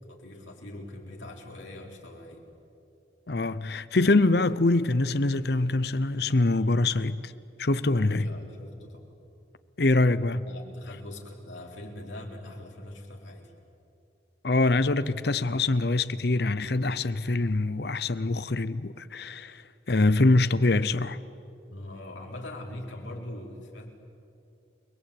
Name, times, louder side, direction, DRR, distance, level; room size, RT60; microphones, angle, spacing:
voice 1, 0.1-2.4 8.0-9.1 10.5-13.5 21.7-23.9, left 1 dB, 85° left, 4.2 m, -42 dB
voice 2, 3.3-7.3 7.6-8.3 9.8-10.5 14.4-19.6 19.9-21.2, left 2 dB, 55° left, 0.8 m, -24 dB
30.0 x 21.0 x 8.6 m
head